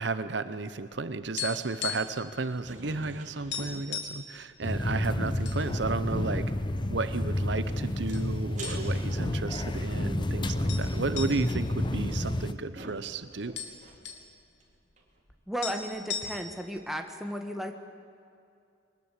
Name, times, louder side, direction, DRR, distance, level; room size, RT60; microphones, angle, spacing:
voice 1, 0.0-6.5 6.9-13.5, right 3 dB, 65° right, 12 dB, 0.9 m, -33 dB
sound 1, 1.4-2.3 2.5-2.7 3.1-3.2 3.5-4.3 4.9-5.6 6.0-6.1 6.8-7.4 8.1-8.3 8.6-9.2 9.5-9.6 10.7-12.7 13.0-13.1 13.3-14.3 15.3-15.4 15.6-16.7, left 7 dB, 65° left, 3.1 m, -37 dB
sound 2, 2.6-4.1 4.4-4.5 4.8-6.0 7.0-9.8 10.2-14.2 14.6-14.7 15.0-15.1, right 1 dB, 40° right, 3.2 m, -47 dB
sound 3, 4.6-12.5, left 1 dB, 25° left, 0.8 m, -30 dB
voice 2, 15.5-17.7, equal, ahead, 4 dB, 1.7 m, -34 dB
23.5 x 20.0 x 8.4 m, 2.4 s
head